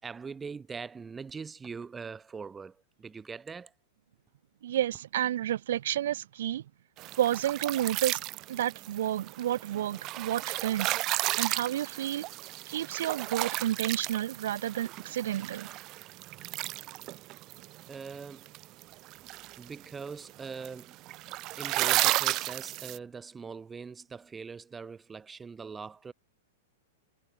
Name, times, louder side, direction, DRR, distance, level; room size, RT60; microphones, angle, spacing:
voice 1, 0.0-3.7 17.9-18.5 19.6-21.0 21.6-26.1, right 5 dB, 15° right, 5.5 m, -42 dB
voice 2, 4.6-6.6 7.2-8.2 8.5-11.0 11.4-12.3 12.7-15.7, right 12 dB, 65° right, 1.7 m, -30 dB
sound 1, 7.0-23.0, right 19 dB, 40° right, 2.1 m, -34 dB
figure-of-eight pair, 105°, 0 cm